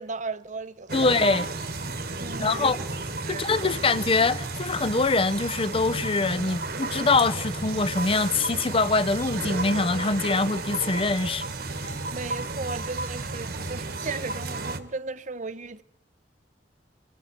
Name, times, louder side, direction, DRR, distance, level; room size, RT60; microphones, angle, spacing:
voice 1, 0.0-1.1 2.2-2.7 3.3-3.7 12.1-15.8, right 3 dB, 45° right, 0.9 m, -36 dB
voice 2, 0.9-1.5 2.4-2.8 3.3-11.4, left 3 dB, 30° left, 0.7 m, -24 dB
sound 1, 0.9-14.8, right 3 dB, 60° right, 1.8 m, -33 dB
26.0 x 23.0 x 4.4 m
head